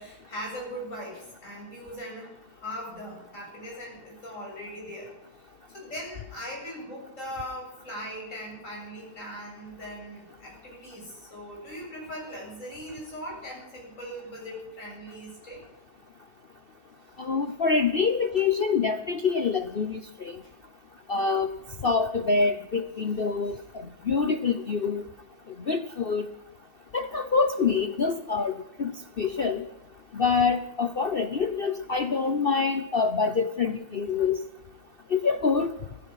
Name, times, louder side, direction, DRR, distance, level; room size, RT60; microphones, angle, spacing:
voice 1, 0.0-5.1 5.7-15.6 20.4-20.6, equal, 40° left, -2 dB, 8.1 m, -40 dB
voice 2, 17.2-20.4 21.1-21.5 21.8-25.0 25.7-26.3 26.9-29.6 30.1-34.4 35.1-35.7, left 5 dB, 60° left, 7 dB, 0.6 m, -26 dB
16.0 x 15.5 x 5.8 m, 0.96 s
omnidirectional pair, 2.1 m